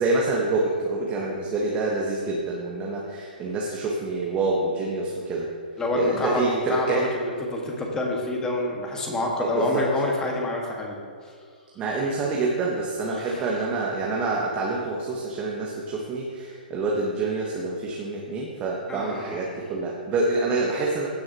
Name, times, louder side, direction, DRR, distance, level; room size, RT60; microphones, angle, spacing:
voice 1, 0.0-5.5 5.9-7.0 9.4-9.8 11.8-21.1, right 3 dB, 25° right, -3 dB, 1.2 m, -27 dB
voice 2, 5.8-11.3 13.1-13.6 18.9-19.4, left 2 dB, 10° left, -1 dB, 1.7 m, -28 dB
16.0 x 6.3 x 2.9 m, 2.1 s
figure-of-eight pair, 125°, 5 cm